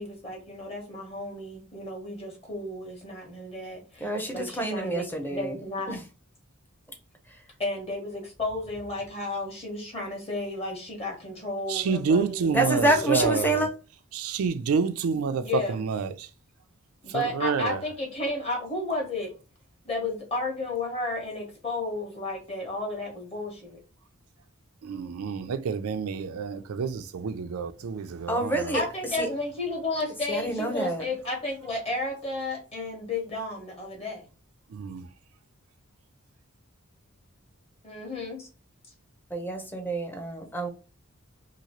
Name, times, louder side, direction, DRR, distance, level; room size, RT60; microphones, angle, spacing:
voice 1, 0.0-6.0 7.6-12.6 13.1-13.3 15.4-15.8 17.0-19.3 19.8-23.8 28.7-34.2 37.8-38.5, left 2 dB, 30° left, 1.1 m, -33 dB
voice 2, 4.0-5.6 5.9-6.0 7.3-7.4 12.5-13.7 28.3-28.8 29.2-29.3 30.3-31.1 39.3-40.7, right 1 dB, 10° left, 0.6 m, -27 dB
voice 3, 11.7-13.7 14.1-16.3 17.1-17.8 24.8-28.8 34.7-35.1, right 5 dB, 90° right, 0.4 m, -28 dB
2.9 x 2.7 x 2.9 m
head